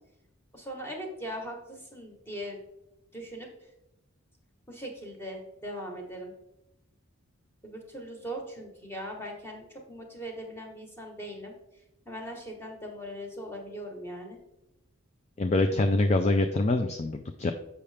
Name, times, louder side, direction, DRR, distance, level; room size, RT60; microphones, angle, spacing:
voice 1, 0.5-2.6 3.1-3.5 4.7-6.3 7.6-11.5 12.0-14.4, equal, 10° left, 1 dB, 1.2 m, -40 dB
voice 2, 15.4-17.5, left 2 dB, 30° left, 7 dB, 0.3 m, -25 dB
7.0 x 5.6 x 3.4 m, 0.90 s
head